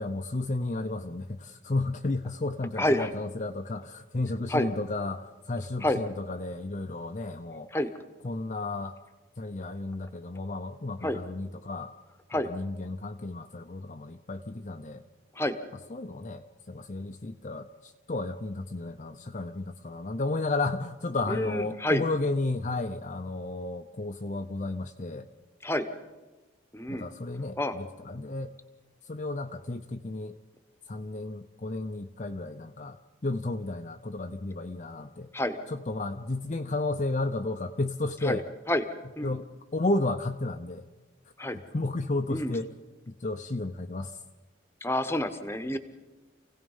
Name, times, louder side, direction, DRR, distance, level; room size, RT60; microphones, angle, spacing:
voice 1, 0.0-7.7 8.2-8.9 9.4-11.9 12.4-15.0 15.9-25.3 26.9-28.5 29.0-30.4 30.9-33.0 33.2-35.3 35.7-38.4 39.2-40.8 41.7-42.7 43.1-44.2, left 2 dB, 35° left, 5 dB, 0.6 m, -33 dB
voice 2, 2.8-3.1 4.5-4.7 5.8-6.0 7.7-7.9 11.0-11.2 12.3-12.5 15.3-15.6 21.3-22.0 25.6-25.9 26.7-27.1 27.6-27.8 35.3-35.6 38.2-38.4 38.7-38.9 39.2-39.3 41.4-41.6 42.3-42.5 44.8-45.8, left 1 dB, 10° left, 10 dB, 1.0 m, -28 dB
28.5 x 17.0 x 5.5 m, 1.2 s
head